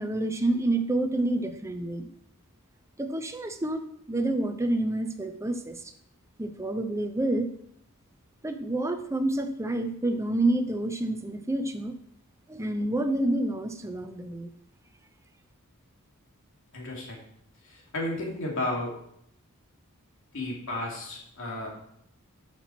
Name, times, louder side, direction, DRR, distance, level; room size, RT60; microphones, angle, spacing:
voice 1, 0.0-2.1 3.0-5.8 6.4-7.5 8.4-12.0 12.5-14.5, right 2 dB, 15° right, 7 dB, 0.6 m, -28 dB
voice 2, 16.7-17.2 17.6-18.9 20.3-21.7, left 1 dB, 65° left, -2 dB, 2.8 m, -33 dB
8.3 x 6.1 x 6.0 m, 0.71 s
head